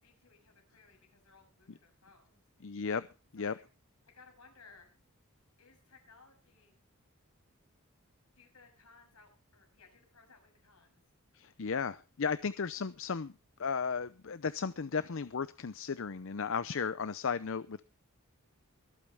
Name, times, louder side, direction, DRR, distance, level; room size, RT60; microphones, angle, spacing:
voice 1, 0.0-2.4 3.4-3.6 4.1-4.9 5.6-6.8 8.4-11.0, left 4 dB, 80° left, 3 dB, 7.0 m, -61 dB
voice 2, 2.6-3.1 3.3-3.5 11.3-13.3 13.6-17.8, left 5 dB, 60° left, 15 dB, 0.6 m, -35 dB
24.5 x 8.8 x 3.5 m, 0.31 s
head